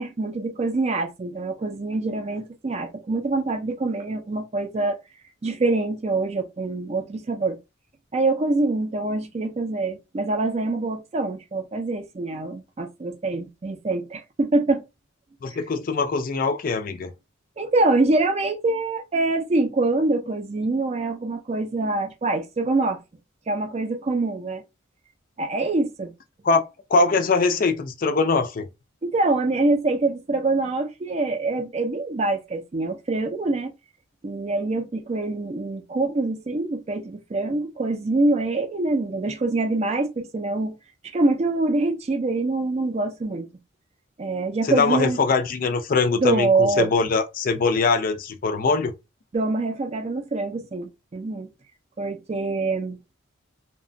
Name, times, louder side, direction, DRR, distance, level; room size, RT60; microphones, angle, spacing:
voice 1, 0.0-5.0 5.4-7.6 8.1-14.8 17.6-23.0 23.5-24.6 25.4-26.1 29.0-33.7 34.2-40.8 41.1-43.5 44.2-45.2 46.2-46.9 49.3-51.5 52.0-53.0, right 2 dB, 30° right, 0.4 m, -25 dB
voice 2, 15.4-17.1 26.4-26.6 26.9-28.7 44.6-48.9, left 4 dB, 45° left, 0.4 m, -22 dB
2.8 x 2.1 x 2.5 m
head